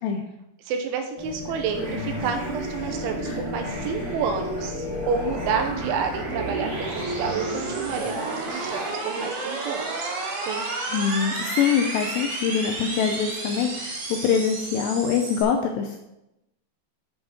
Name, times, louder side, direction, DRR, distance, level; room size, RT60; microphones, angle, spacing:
voice 1, 0.7-10.1 10.5-10.7, right 6 dB, 75° right, 5 dB, 3.4 m, -29 dB
sound 1, 1.2-7.3, left 5 dB, 55° left, 3.9 m, -39 dB
sound 2, 1.7-8.9, right 1 dB, 40° right, 2.1 m, -33 dB
sound 3, 2.2-15.4, right 2 dB, 60° right, 4.3 m, -33 dB
voice 2, 10.9-16.0, left 7 dB, 80° left, 4 dB, 2.4 m, -24 dB
9.8 x 6.9 x 4.3 m, 0.87 s
omnidirectional pair, 5.8 m